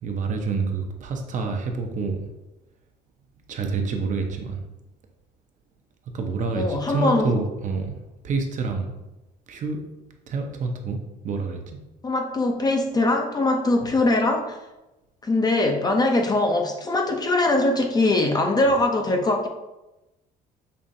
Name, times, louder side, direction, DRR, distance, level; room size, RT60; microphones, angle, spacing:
voice 1, 0.0-2.2 3.5-4.6 6.1-8.9 9.5-9.8 10.3-11.0 11.2-11.8, right 4 dB, 50° right, 3 dB, 0.6 m, -27 dB
voice 2, 6.5-7.3 12.0-14.6 15.2-19.5, left 2 dB, 25° left, 3 dB, 0.5 m, -22 dB
5.4 x 2.4 x 2.6 m, 0.99 s
cardioid pair, 110°, 17 cm